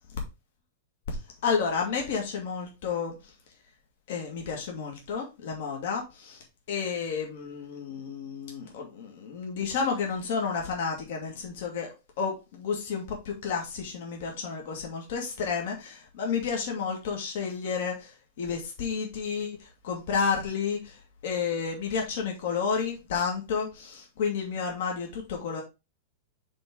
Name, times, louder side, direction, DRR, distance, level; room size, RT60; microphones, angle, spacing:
voice 1, 1.4-3.2 4.1-6.4 6.7-11.9 12.2-21.0 21.2-25.6, left 5 dB, 60° left, 1.8 m, -31 dB
7.4 x 3.7 x 3.8 m
supercardioid pair, 160°, 0 cm